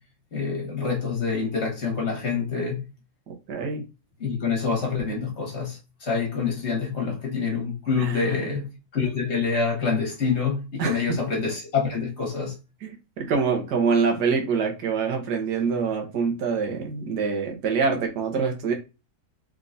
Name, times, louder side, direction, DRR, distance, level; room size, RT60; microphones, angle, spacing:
voice 1, 0.3-2.8 4.2-12.6, left 5 dB, 45° left, 1.2 m, -26 dB
voice 2, 3.3-3.8 8.0-8.4 10.8-11.0 12.8-12.9 13.2-18.7, right 5 dB, 80° right, 1.6 m, -25 dB
3.7 x 3.6 x 2.5 m
omnidirectional pair, 1.7 m